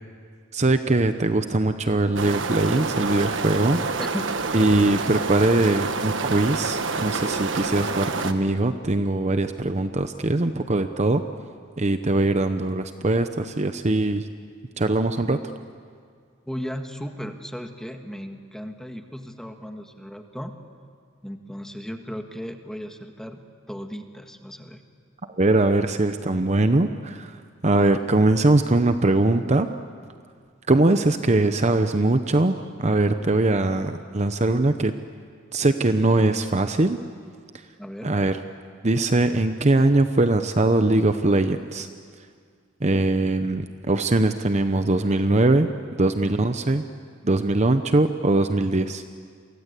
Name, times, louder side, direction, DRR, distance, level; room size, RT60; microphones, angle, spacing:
voice 1, 0.5-3.8 4.5-11.2 11.8-14.3 14.8-15.4 25.4-27.4 27.6-29.7 30.7-34.9 35.5-37.0 38.0-38.4 38.8-41.9 42.8-45.7 46.0-46.8 47.2-49.0, right 2 dB, 35° right, 9 dB, 0.8 m, -21 dB
sound 1, 2.2-8.3, right 4 dB, 65° right, 1.4 m, -27 dB
voice 2, 16.5-20.5 21.2-23.4 23.7-24.8 37.8-38.1 46.2-46.6, equal, 5° left, 5 dB, 1.6 m, -36 dB
29.5 x 23.5 x 8.3 m, 2.1 s
head